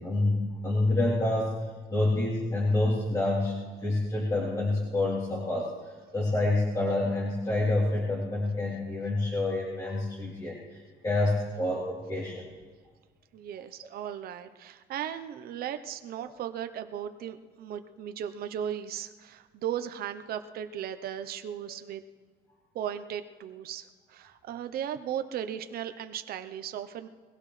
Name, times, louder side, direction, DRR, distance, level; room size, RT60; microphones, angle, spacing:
voice 1, 0.0-12.4, left 2 dB, 20° left, -7 dB, 3.5 m, -28 dB
voice 2, 13.3-22.0 22.7-27.1, right 9 dB, 65° right, 9 dB, 0.9 m, -36 dB
21.5 x 16.5 x 3.3 m, 1.5 s
cardioid pair, 110°, 17 cm